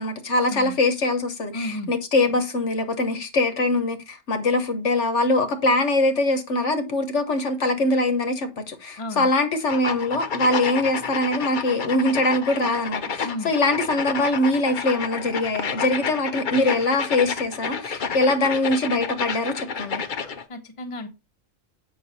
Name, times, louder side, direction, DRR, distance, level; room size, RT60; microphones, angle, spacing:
voice 1, 0.0-20.0, left 2 dB, 65° left, 1.4 m, -23 dB
voice 2, 1.5-1.9 9.0-9.3 13.2-13.5 20.5-21.1, left 1 dB, 25° left, 1.2 m, -32 dB
sound 1, 9.7-20.4, left 5 dB, 45° left, 0.8 m, -30 dB
7.8 x 6.0 x 4.1 m
omnidirectional pair, 1.3 m